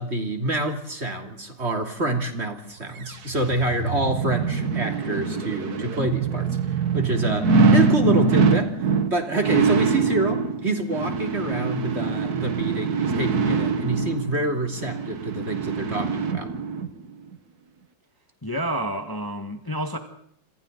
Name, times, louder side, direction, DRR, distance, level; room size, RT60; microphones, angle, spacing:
voice 1, 0.0-16.5, right 2 dB, 35° right, 3.2 m, -27 dB
sound 1, 3.0-16.9 17.3-17.4, right 4 dB, 55° right, 2.0 m, -24 dB
voice 2, 18.4-20.0, right 1 dB, 10° left, 1.8 m, -29 dB
27.5 x 26.5 x 4.1 m
omnidirectional pair, 2.0 m